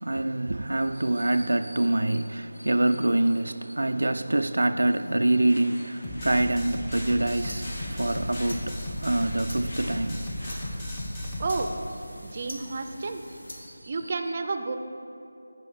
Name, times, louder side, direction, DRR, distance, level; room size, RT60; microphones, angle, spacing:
voice 1, 0.0-10.3, right 1 dB, 85° right, 0.3 m, -25 dB
sound 1, 5.4-10.7, equal, 65° left, 2.3 m, -45 dB
sound 2, 6.0-11.7, left 1 dB, 15° left, 1.0 m, -35 dB
sound 3, 7.1-13.8, equal, 90° left, 1.5 m, -45 dB
voice 2, 11.4-11.7 12.2-13.2 13.8-14.8, right 3 dB, 35° right, 0.5 m, -30 dB
9.0 x 4.9 x 6.8 m
figure-of-eight pair, 170°, 0 cm